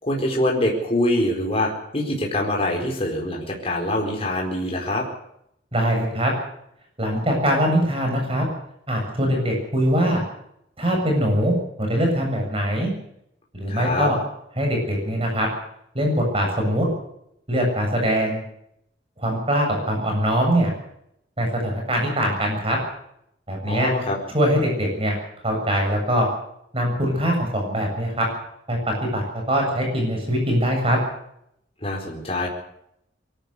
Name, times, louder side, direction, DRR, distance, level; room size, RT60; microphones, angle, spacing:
voice 1, 0.0-5.1 13.7-14.1 23.6-24.2 31.8-32.5, left 1 dB, 35° left, -1 dB, 4.5 m, -24 dB
voice 2, 5.7-6.3 7.0-8.4 8.9-10.2 10.8-12.9 13.5-14.2 14.6-15.5 15.9-16.9 17.5-18.4 19.2-20.7 21.4-22.8 23.5-23.9 24.3-25.1 25.4-26.3 26.7-28.3 28.7-31.0, equal, 35° right, 2 dB, 7.5 m, -22 dB
23.5 x 13.5 x 8.2 m, 0.76 s
head